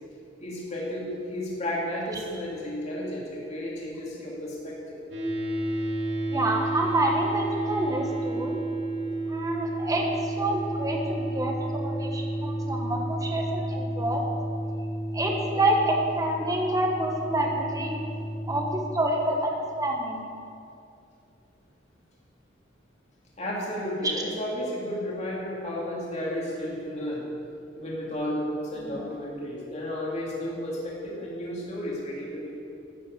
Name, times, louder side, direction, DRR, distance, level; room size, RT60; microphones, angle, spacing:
voice 1, 0.4-5.0 23.4-27.2 27.8-32.6, left 1 dB, 40° left, -4 dB, 3.0 m, -33 dB
sound 1, 5.1-18.7, right 1 dB, 70° right, 3.1 m, -31 dB
voice 2, 6.3-8.6 9.3-14.2 15.1-18.0 18.5-20.2, right 1 dB, 20° right, 0 dB, 1.3 m, -27 dB
13.0 x 8.0 x 8.1 m, 2.6 s
head